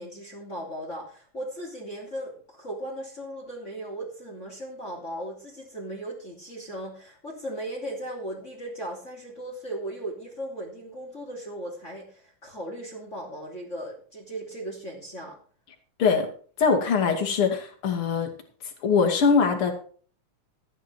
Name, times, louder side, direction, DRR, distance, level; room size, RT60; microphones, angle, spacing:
voice 1, 0.0-15.4, right 1 dB, 20° left, -1 dB, 3.1 m, -37 dB
voice 2, 16.6-18.3 18.8-19.7, left 5 dB, 45° left, 3 dB, 3.0 m, -22 dB
14.0 x 9.3 x 4.6 m, 0.43 s
omnidirectional pair, 3.7 m